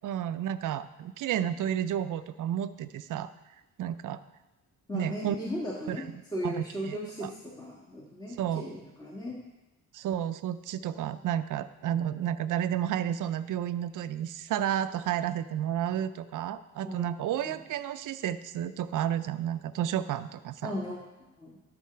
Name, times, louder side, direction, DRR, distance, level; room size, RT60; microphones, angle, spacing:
voice 1, 0.0-3.3 3.8-4.2 4.9-5.4 5.9-6.0 6.4-7.3 8.4-8.7 9.9-20.7, right 10 dB, 70° right, 12 dB, 0.5 m, -31 dB
voice 2, 4.9-6.0 6.3-9.4 16.8-17.5 20.6-21.5, equal, 10° left, -5 dB, 1.4 m, -37 dB
11.5 x 4.1 x 5.6 m, 1.0 s
cardioid pair, 100°, 32 cm